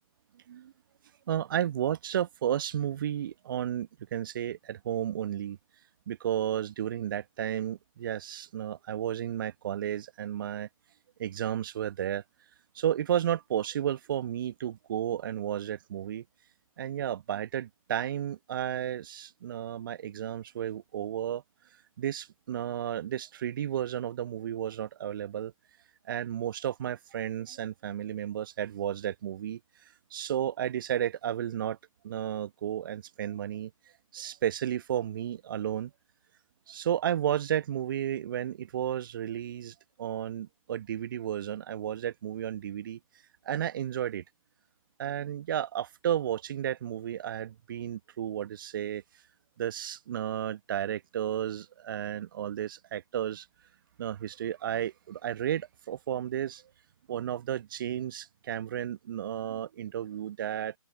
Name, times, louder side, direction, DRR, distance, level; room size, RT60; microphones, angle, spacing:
voice 1, 1.3-5.6 6.1-10.7 11.2-12.2 12.7-16.2 16.8-21.4 22.0-25.5 26.1-29.6 30.1-31.8 32.0-33.7 34.1-35.9 36.7-43.0 43.4-44.2 45.0-49.0 49.6-53.5 54.0-56.6 57.1-60.7, right 10 dB, 35° right, 1.3 m, -33 dB
open air
figure-of-eight pair, 140°, 18 cm